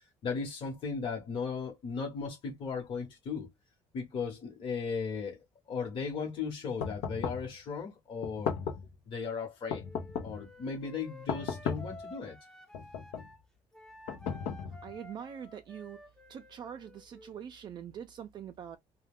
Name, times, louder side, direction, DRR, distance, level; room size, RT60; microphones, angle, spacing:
voice 1, 0.2-3.5 3.9-8.5 9.1-9.8 10.2-12.4, left 5 dB, 45° left, 1.0 m, -36 dB
sound 1, 6.8-7.5 8.2-8.9 9.7-10.5 11.3-12.0 12.7-13.3 14.1-15.0, left 7 dB, 80° left, 0.6 m, -36 dB
Wind instrument woodwind instrument, 9.8-13.4 13.7-17.5, left 1 dB, 5° left, 0.6 m, -52 dB
voice 2, 14.5-16.0 16.3-18.8, right 8 dB, 40° right, 0.4 m, -44 dB
2.3 x 2.2 x 3.4 m
cardioid pair, 140°, 11 cm